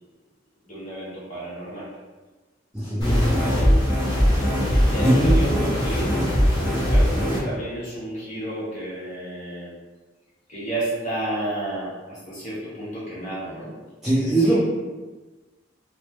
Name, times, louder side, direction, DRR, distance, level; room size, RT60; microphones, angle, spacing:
voice 1, 0.6-1.9 3.0-4.0 4.7-6.0 6.9-9.7 10.5-13.7 14.2-14.6, right 1 dB, 40° left, -9 dB, 1.4 m, -32 dB
voice 2, 2.7-3.5 5.0-5.4 14.0-14.6, right 1 dB, 5° right, -9 dB, 0.4 m, -21 dB
sound 1, 3.0-7.4, equal, 20° left, 1.0 m, -20 dB
2.9 x 2.2 x 3.1 m, 1.2 s
head